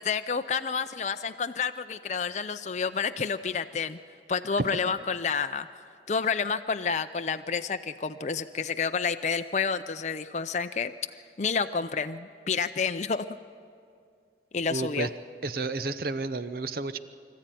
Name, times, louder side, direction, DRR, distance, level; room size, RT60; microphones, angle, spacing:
voice 1, 0.0-4.0 4.3-5.7 6.1-10.9 11.4-13.3 14.5-15.1, left 5 dB, 40° left, 8 dB, 0.5 m, -29 dB
voice 2, 14.7-15.1 15.4-17.0, right 3 dB, 50° right, 13 dB, 0.7 m, -31 dB
24.5 x 14.0 x 9.1 m, 2.3 s
head